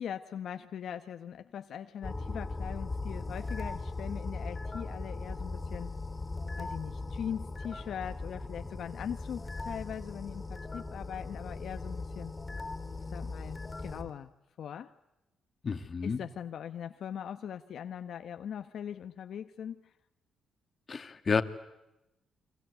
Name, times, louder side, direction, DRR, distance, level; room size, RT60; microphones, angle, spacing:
voice 1, 0.0-5.9 6.6-12.3 13.1-14.3 14.6-14.9 16.0-19.9, left 8 dB, 70° left, 8 dB, 1.0 m, -41 dB
sound 1, 2.0-14.1, left 3 dB, 20° left, 3.8 m, -39 dB
voice 2, 15.6-16.2 20.9-21.4, left 5 dB, 40° left, 9 dB, 1.9 m, -30 dB
29.0 x 24.0 x 8.1 m, 0.92 s
cardioid pair, 95°, 0 cm